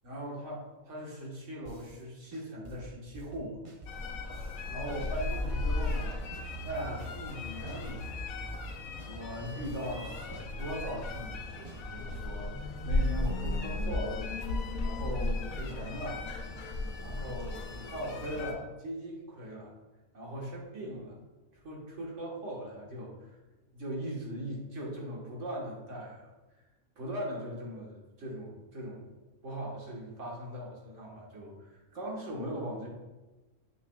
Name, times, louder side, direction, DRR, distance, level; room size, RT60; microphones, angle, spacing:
voice 1, 0.0-0.6 0.9-3.6 4.7-6.2 6.6-8.3 9.0-14.3 14.8-16.3 17.0-19.7 20.1-21.2 21.5-23.3 23.7-26.3 27.0-32.9, equal, 65° right, -3 dB, 1.7 m, -40 dB
sound 1, 1.7-2.0 2.3-4.7 5.0-7.4 7.7-10.0 10.3-12.3, right 1 dB, 50° right, 0.4 m, -49 dB
sound 2, 3.9-18.5, left 2 dB, 85° left, 1.1 m, -35 dB
7.5 x 6.1 x 2.3 m, 1.1 s
omnidirectional pair, 1.4 m